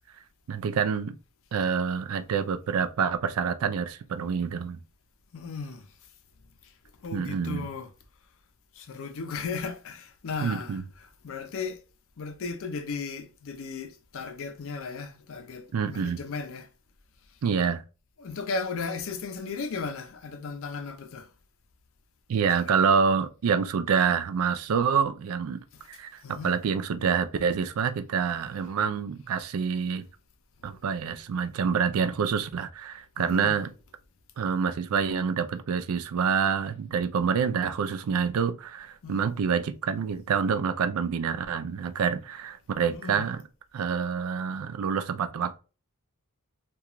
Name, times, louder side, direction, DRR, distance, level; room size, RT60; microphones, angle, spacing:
voice 1, 0.5-1.2 1.5-4.8 7.1-7.7 10.4-10.8 15.7-16.2 17.4-17.8 22.3-25.6 25.9-30.1 30.6-33.7 34.4-43.4 43.7-45.6, right 6 dB, 70° right, 0.4 m, -27 dB
voice 2, 5.3-5.8 7.0-7.9 8.8-10.8 11.2-11.8 12.2-16.7 18.2-21.3 22.5-22.9 25.8-25.9 26.2-26.5 30.7-30.8 33.2-33.5 39.0-39.2 42.9-43.3, left 4 dB, 65° left, 0.5 m, -36 dB
2.9 x 2.3 x 2.3 m
head